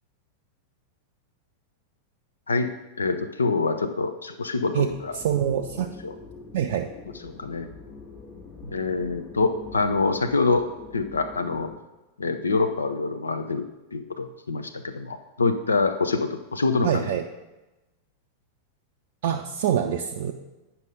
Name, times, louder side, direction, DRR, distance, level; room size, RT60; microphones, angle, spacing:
voice 1, 3.0-5.2 6.0-6.1 7.2-7.7 8.6-10.7 10.9-11.7 12.2-13.7 13.9-17.1, left 3 dB, 75° left, 9 dB, 0.4 m, -25 dB
sound 1, 4.9-11.8, left 4 dB, 35° left, 2.1 m, -44 dB
voice 2, 5.1-5.9 6.5-6.9 16.8-17.2 19.2-20.3, right 9 dB, 55° right, 3 dB, 0.4 m, -25 dB
8.9 x 5.6 x 3.8 m, 1.0 s
figure-of-eight pair, 90°, 0 cm